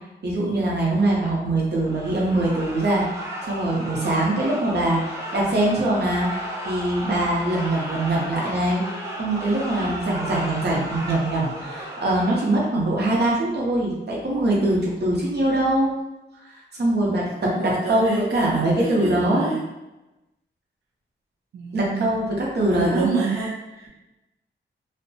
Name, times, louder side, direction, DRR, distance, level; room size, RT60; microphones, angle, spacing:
voice 1, 0.2-6.3 6.6-8.8 9.2-15.9 16.4-19.5 21.7-23.1, right 1 dB, 55° right, -4 dB, 0.7 m, -23 dB
sound 1, 1.8-12.7, right 1 dB, 15° right, 0.5 m, -34 dB
voice 2, 17.0-19.6 21.5-22.2 22.7-23.9, right 5 dB, 85° right, -4 dB, 0.4 m, -30 dB
2.6 x 2.1 x 2.6 m, 1.0 s
wide cardioid pair, 125°, 21 cm